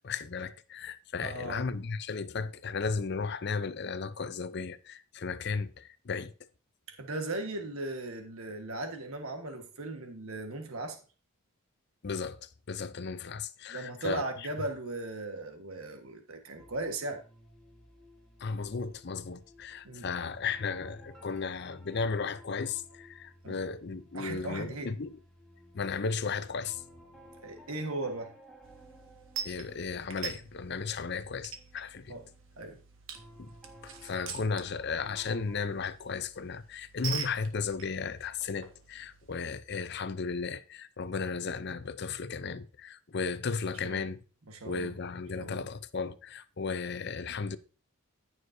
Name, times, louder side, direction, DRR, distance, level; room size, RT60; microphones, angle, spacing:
voice 1, 0.0-6.3 12.0-14.5 18.4-25.1 25.7-26.8 29.4-32.1 33.4-33.5 33.8-44.2 44.6-47.6, left 5 dB, 50° left, 0.6 m, -35 dB
voice 2, 1.2-1.7 7.0-11.0 13.7-17.2 19.8-20.1 23.4-23.6 24.1-24.9 27.4-28.3 32.1-32.3 32.6-32.8 43.8-44.1 44.5-44.9 45.3-45.6, right 2 dB, 80° right, 1.5 m, -37 dB
sound 1, 16.6-35.6, equal, 5° left, 2.2 m, -56 dB
sound 2, 28.6-39.4, right 6 dB, 65° right, 1.5 m, -44 dB
14.5 x 6.5 x 2.7 m
head